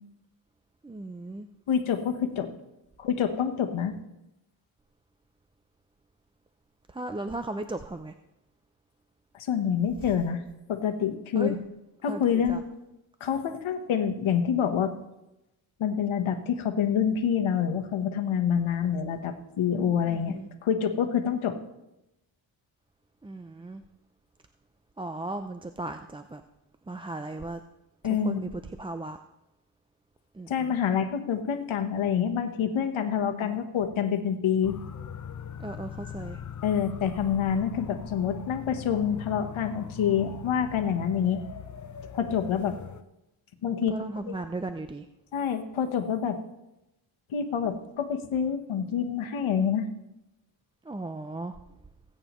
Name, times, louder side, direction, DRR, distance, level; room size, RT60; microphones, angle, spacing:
voice 1, 0.8-1.5 6.9-8.1 11.3-11.5 12.1-12.6 20.0-20.5 21.4-21.5 23.2-23.8 25.0-26.4 26.9-27.6 28.0-29.2 30.3-30.8 33.1-33.6 35.6-36.4 43.9-45.1 50.8-51.5, right 2 dB, 10° right, 8 dB, 0.3 m, -36 dB
voice 2, 1.7-2.5 3.0-3.9 9.3-10.4 10.7-11.6 12.0-12.6 13.2-14.9 15.8-21.5 28.0-28.4 30.5-34.8 36.6-41.4 42.1-42.8 43.6-44.0 44.3-44.4 45.3-46.4 47.3-49.9, left 8 dB, 85° left, 6 dB, 1.2 m, -27 dB
sound 1, 34.6-43.0, left 8 dB, 40° left, 0.6 m, -41 dB
19.5 x 8.8 x 3.1 m, 0.92 s
cardioid pair, 105°, 47 cm